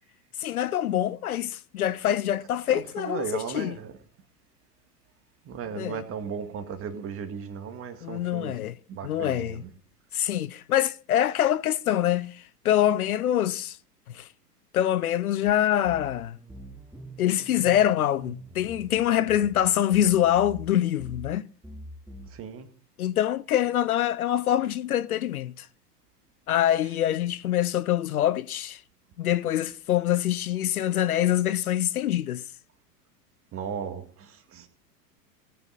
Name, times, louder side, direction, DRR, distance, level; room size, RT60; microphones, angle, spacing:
voice 1, 0.4-3.8 5.7-6.0 8.0-8.7 9.0-9.6 10.1-13.8 14.1-14.3 14.7-16.4 17.2-21.5 23.0-25.7 26.5-28.8 29.2-32.4, left 11 dB, 65° left, 0.7 m, -25 dB
voice 2, 2.7-3.9 5.4-8.6 8.9-9.7 22.3-22.7 33.5-34.7, right 7 dB, 25° right, 2.1 m, -36 dB
sound 1, 15.5-15.6 15.8-20.7 21.0-21.3 21.6-22.3, right 1 dB, 5° right, 1.6 m, -45 dB
19.0 x 9.6 x 4.0 m
figure-of-eight pair, 95°, 48 cm